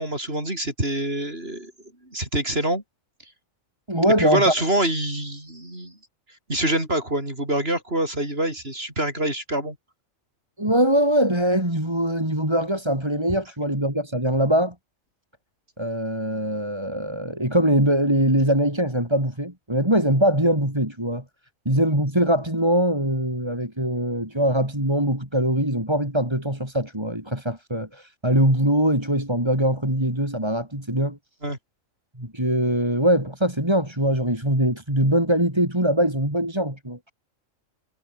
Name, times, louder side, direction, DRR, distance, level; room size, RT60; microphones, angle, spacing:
voice 1, 0.0-1.7 2.1-2.8 4.2-6.0 6.5-9.8 31.4-31.6, right 1 dB, 50° right, 7.1 m, -25 dB
voice 2, 3.9-4.5 10.6-14.8 15.8-21.2 21.7-31.2 32.2-37.1, right 1 dB, 20° right, 5.4 m, -22 dB
omnidirectional pair, 1.4 m